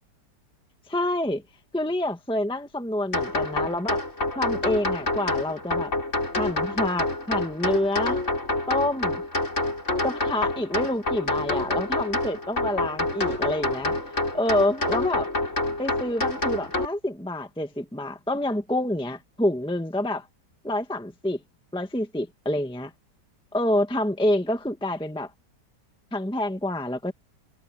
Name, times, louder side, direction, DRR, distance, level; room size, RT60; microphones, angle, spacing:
voice 1, 0.9-1.4 1.7-4.0 4.3-5.9 6.3-8.2 8.7-9.2 10.0-14.0 14.3-15.3 15.8-20.3 20.6-21.4 21.7-22.9 23.5-25.3 26.1-27.1, left 1 dB, 5° left, 1.3 m, -27 dB
sound 1, 3.1-16.9, left 2 dB, 40° left, 6.1 m, -27 dB
omnidirectional pair, 1.9 m